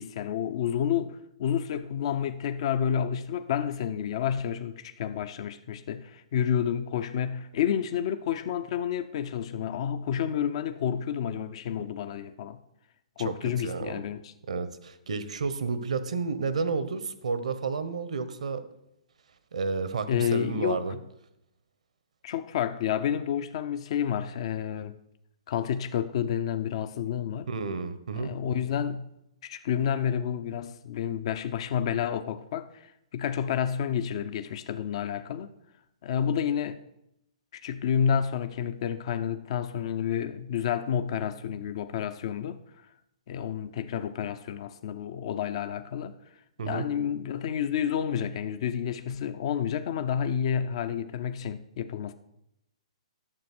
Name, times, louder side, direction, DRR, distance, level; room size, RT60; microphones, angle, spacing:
voice 1, 0.0-12.6 13.2-14.3 20.1-21.0 22.2-24.9 25.5-27.5 28.2-29.1 29.4-35.5 36.0-36.8 37.5-42.9 43.3-46.1 46.7-52.1, left 8 dB, 55° left, 0.6 m, -30 dB
voice 2, 13.6-14.0 14.5-18.6 19.5-20.9 27.5-28.3 46.6-46.9, right 4 dB, 75° right, 1.1 m, -31 dB
11.5 x 7.1 x 6.1 m
hypercardioid pair, 130°, 4 cm